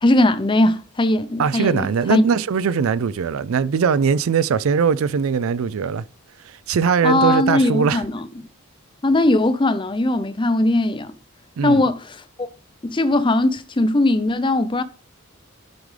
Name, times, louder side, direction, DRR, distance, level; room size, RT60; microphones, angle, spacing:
voice 1, 0.0-2.2 7.0-8.3 9.0-11.1 11.6-12.5 12.8-14.8, left 1 dB, 25° left, 0.5 m, -19 dB
voice 2, 1.4-6.1 6.4-8.0 11.6-11.8, right 6 dB, 80° right, 0.4 m, -20 dB
11.5 x 5.0 x 3.3 m
head